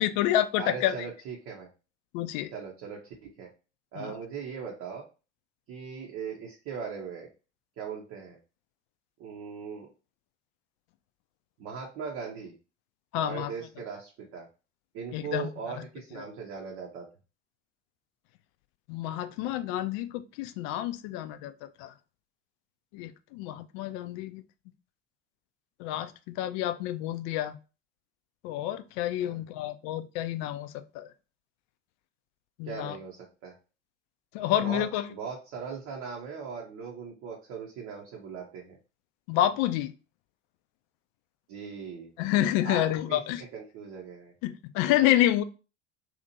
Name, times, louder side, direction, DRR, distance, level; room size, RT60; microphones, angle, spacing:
voice 1, 0.0-0.9 2.1-2.5 4.0-4.1 13.1-13.5 15.1-15.5 18.9-21.9 22.9-24.4 25.8-27.6 28.4-31.1 32.6-33.0 34.3-35.1 39.3-39.9 42.2-43.4 44.4-45.4, left 13 dB, 50° left, 11 dB, 0.4 m, -28 dB
voice 2, 0.6-1.7 2.5-3.5 3.9-5.0 5.7-7.3 7.8-8.4 9.2-9.9 11.6-12.5 13.2-14.5 14.9-17.1 29.2-29.4 32.6-33.6 34.6-38.8 41.5-42.1 42.6-43.2 43.5-44.3, right 6 dB, 45° right, -2 dB, 0.8 m, -39 dB
2.8 x 2.5 x 2.6 m, 0.32 s
figure-of-eight pair, 70°, 35 cm